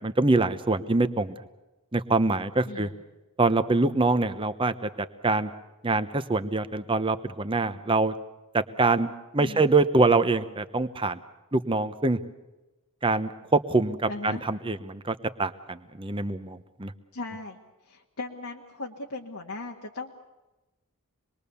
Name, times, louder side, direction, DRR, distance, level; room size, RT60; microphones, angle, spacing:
voice 1, 0.0-1.3 1.9-2.9 3.4-4.9 5.2-5.5 5.8-8.1 8.5-9.1 9.3-11.2 11.5-12.2 13.0-14.0 14.2-16.9, right 3 dB, 25° right, 11 dB, 1.0 m, -24 dB
voice 2, 2.6-3.0 9.4-9.7 14.1-14.4 17.1-17.6 17.9-20.1, left 2 dB, 75° left, -1 dB, 1.8 m, -38 dB
26.0 x 21.0 x 7.0 m, 1.1 s
head